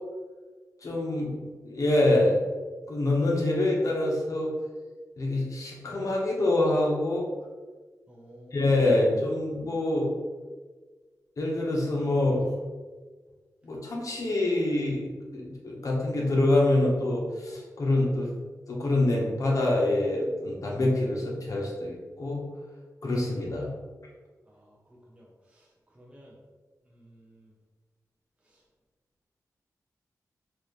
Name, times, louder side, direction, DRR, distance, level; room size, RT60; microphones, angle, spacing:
voice 1, 0.8-2.4 2.9-4.5 5.2-7.3 8.5-10.1 11.4-12.5 13.6-18.3 18.7-22.4 23.0-23.7, left 2 dB, 60° left, -2 dB, 1.0 m, -25 dB
voice 2, 8.1-8.8 24.5-25.7 25.9-26.4 26.9-27.5 28.4-28.6, equal, 20° right, -3 dB, 0.6 m, -54 dB
4.0 x 2.5 x 3.2 m, 1.4 s
wide cardioid pair, 90°, 6 cm